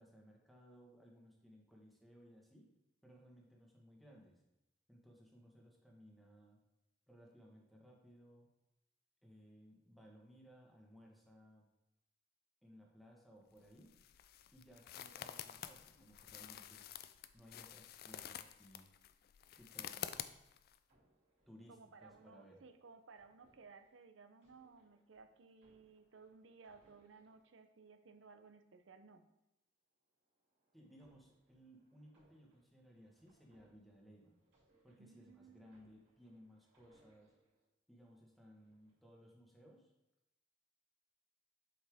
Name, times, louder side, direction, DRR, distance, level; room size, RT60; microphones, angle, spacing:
voice 1, 0.0-2.7 3.0-4.4 4.9-6.6 7.1-8.5 9.2-11.7 12.6-13.9 14.5-16.8 17.3-18.9 19.5-20.1 21.5-22.6 30.7-34.3 34.8-37.3 37.9-39.9, equal, ahead, -2 dB, 1.3 m, -61 dB
sound 1, 13.6-20.8, left 10 dB, 55° left, 0.3 m, -49 dB
sound 2, 19.3-20.3 20.8-28.1 30.0-37.7 38.3-39.1, right 1 dB, 65° right, 2.8 m, -76 dB
voice 2, 21.7-29.3 35.0-35.8, right 4 dB, 80° right, 9 dB, 0.7 m, -60 dB
7.7 x 5.5 x 3.5 m, 0.93 s
head